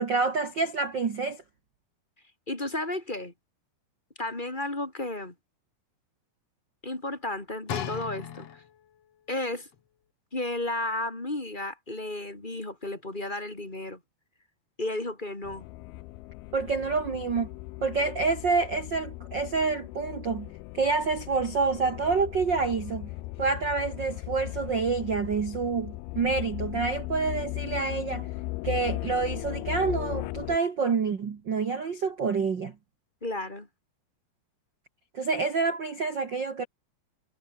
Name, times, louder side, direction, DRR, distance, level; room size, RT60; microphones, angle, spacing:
voice 1, 0.0-1.4 16.5-17.5 17.8-23.1 23.4-28.3 28.6-32.7 35.1-36.6, right 4 dB, 60° right, 1.2 m, -28 dB
voice 2, 2.5-3.3 4.2-5.3 6.8-8.5 9.3-9.7 10.3-14.0 14.8-15.7 33.2-33.7, left 2 dB, 15° left, 2.6 m, -33 dB
sound 1, 7.7-9.0 9.7-9.8, left 9 dB, 50° left, 2.2 m, -36 dB
sound 2, 15.4-30.6, left 20 dB, 80° left, 2.5 m, -37 dB
omnidirectional pair, 4.7 m